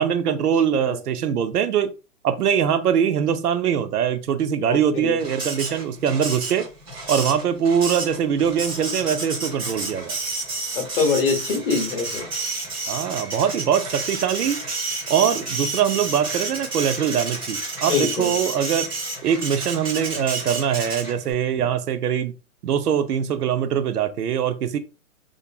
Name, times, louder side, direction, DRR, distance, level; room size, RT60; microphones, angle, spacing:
voice 1, 0.0-1.9 2.2-6.7 7.1-10.2 12.9-14.6 15.1-18.9 19.2-22.3 22.6-24.8, right 8 dB, 85° right, 0.6 m, -22 dB
voice 2, 4.6-5.2 10.7-12.3 17.8-18.3 21.5-21.6, left 5 dB, 35° left, 0.8 m, -24 dB
Printer, 5.2-21.3, right 3 dB, 15° right, 0.6 m, -30 dB
2.9 x 2.5 x 2.2 m
hypercardioid pair, 155°, 45 cm